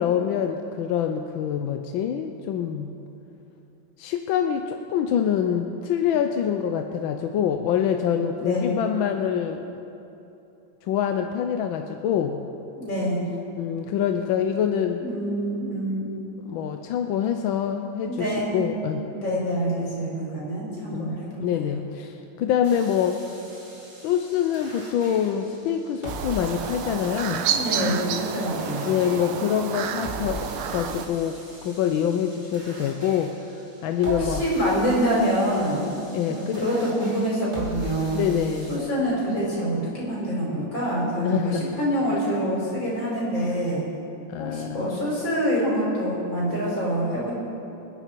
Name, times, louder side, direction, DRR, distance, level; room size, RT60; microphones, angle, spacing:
voice 1, 0.0-2.9 4.0-9.8 10.9-12.4 13.6-15.0 16.4-18.3 18.5-19.0 20.9-23.2 24.0-27.5 28.8-34.4 36.1-36.6 38.1-38.8 41.2-41.6 44.3-45.0, left 9 dB, 75° left, 5 dB, 1.3 m, -25 dB
voice 2, 8.4-8.7 12.8-13.2 15.0-16.3 18.0-18.5 19.1-21.8 27.5-28.9 34.0-36.0 36.3-38.2 38.7-43.8 44.4-47.3, equal, 60° left, -5 dB, 5.2 m, -26 dB
sound 1, 22.6-38.8, equal, 30° right, 2.9 m, -41 dB
sound 2, 26.1-31.1, right 8 dB, 85° right, 1.7 m, -30 dB
26.5 x 10.0 x 4.6 m, 2.9 s
omnidirectional pair, 2.4 m